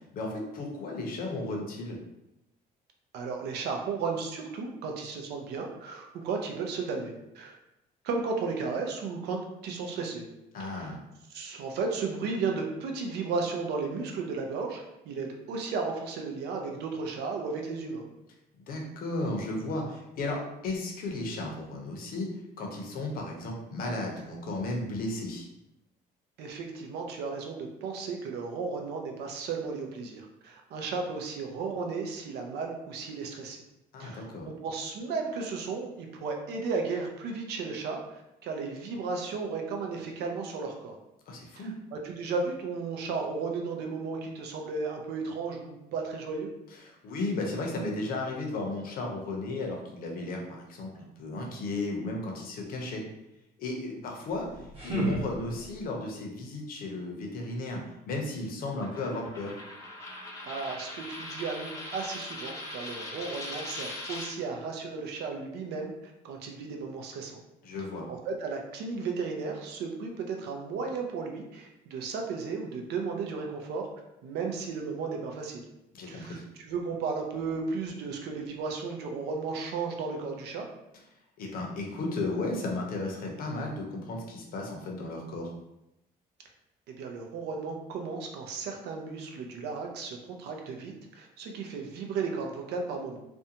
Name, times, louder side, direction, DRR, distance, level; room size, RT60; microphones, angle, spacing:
voice 1, 0.1-2.0 10.5-11.0 18.7-22.3 22.6-25.5 33.9-34.5 41.3-41.7 46.8-53.0 53.6-54.5 54.8-57.8 58.1-59.5 67.6-68.1 75.9-76.4 81.4-85.5, left 2 dB, 60° left, 0 dB, 0.7 m, -34 dB
voice 2, 3.1-7.5 8.0-10.2 10.6-10.9 11.3-18.0 26.4-33.6 34.0-41.0 41.6-46.5 60.4-65.9 66.2-67.4 68.1-73.9 74.2-75.6 76.1-80.6 86.9-93.2, right 4 dB, 80° right, 2 dB, 0.5 m, -34 dB
sound 1, 54.3-55.9, right 1 dB, 35° right, 0.9 m, -33 dB
Coin (dropping), 58.8-64.3, left 1 dB, 20° left, 0.6 m, -40 dB
2.5 x 2.2 x 2.8 m, 0.89 s
cardioid pair, 110°, 17 cm